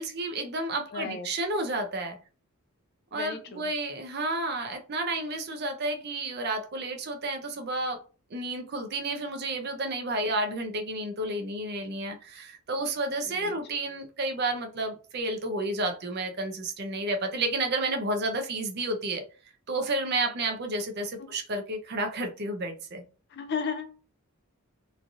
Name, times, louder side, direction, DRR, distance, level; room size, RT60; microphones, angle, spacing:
voice 1, 0.0-2.2 3.1-8.0 8.3-19.2 19.7-23.0, right 2 dB, 50° right, 5 dB, 0.5 m, -31 dB
voice 2, 0.9-1.3 3.1-3.7 13.2-13.6 21.2-21.3 23.3-24.0, left 5 dB, 50° left, 7 dB, 0.5 m, -35 dB
3.1 x 2.4 x 2.6 m, 0.36 s
head